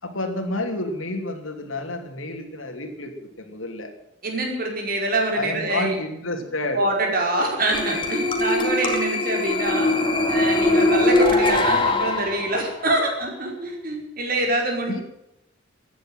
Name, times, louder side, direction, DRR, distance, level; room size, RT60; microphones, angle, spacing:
voice 1, 0.0-3.9 5.3-6.8 14.9-15.0, left 2 dB, 85° left, 5 dB, 2.9 m, -30 dB
voice 2, 4.2-6.0 6.7-9.9 10.3-15.0, right 2 dB, 45° right, 1 dB, 5.2 m, -25 dB
sound 1, 7.7-12.7, left 2 dB, 25° left, 2.3 m, -21 dB
15.5 x 10.5 x 9.1 m, 0.86 s
head